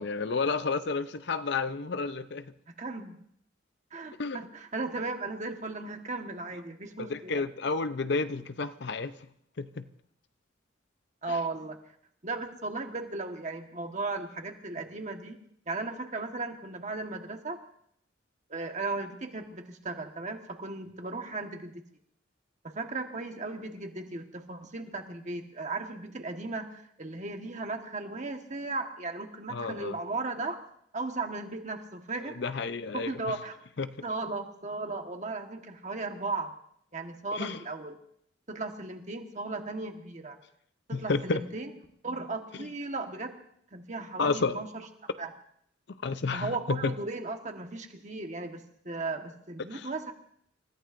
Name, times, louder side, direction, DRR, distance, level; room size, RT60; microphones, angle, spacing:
voice 1, 0.0-2.5 4.2-4.4 7.0-9.1 9.6-9.8 29.5-30.0 32.3-33.1 33.8-33.9 37.3-37.6 40.9-41.4 44.2-44.6 46.0-46.9 49.7-49.8, left 4 dB, 60° left, 0.6 m, -31 dB
voice 2, 2.8-3.2 3.9-7.4 11.2-11.8 12.2-15.4 15.7-17.6 18.5-21.8 22.6-30.6 30.9-32.4 32.9-33.6 34.0-36.5 36.9-38.0 38.5-40.4 40.9-41.7 42.0-43.3 43.7-44.7 45.2-45.3 46.3-50.1, right 3 dB, 40° right, 1.4 m, -36 dB
29.0 x 14.5 x 2.6 m
head